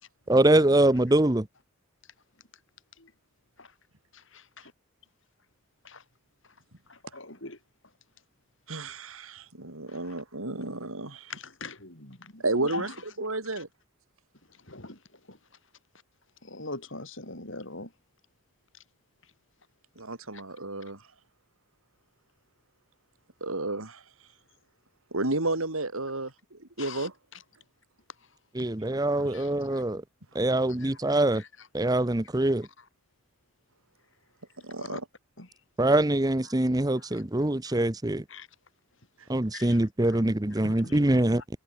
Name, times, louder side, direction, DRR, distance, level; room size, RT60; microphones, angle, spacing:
voice 1, 0.3-1.4 28.5-30.0 30.3-31.4 31.7-32.7 35.8-38.2 39.3-41.4, right 1 dB, 15° right, 0.8 m, -24 dB
voice 2, 7.1-7.6 10.0-10.1 11.3-12.9 14.7-15.0 15.3-15.4 16.4-17.9 26.8-27.1 29.3-29.8 30.8-30.9 34.8-35.0 35.4-35.5 37.0-37.1 37.7-37.8 38.3-38.5 39.5-40.2 40.6-41.0, left 3 dB, 60° left, 6.5 m, -41 dB
voice 3, 8.7-11.3 12.4-13.7 20.0-21.0 23.4-24.0 25.1-27.1 29.1-29.4 34.6-35.0, right 2 dB, 75° right, 4.0 m, -32 dB
head